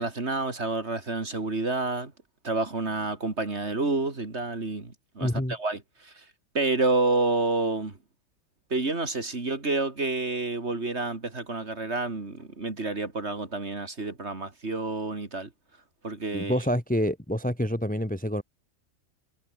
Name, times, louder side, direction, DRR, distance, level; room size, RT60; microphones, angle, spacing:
voice 1, 0.0-2.1 2.4-6.2 6.5-8.0 8.7-15.5 16.0-16.5, right 3 dB, 40° right, 3.1 m, -29 dB
voice 2, 5.2-5.6 16.3-18.4, equal, 5° left, 1.6 m, -27 dB
omnidirectional pair, 1.8 m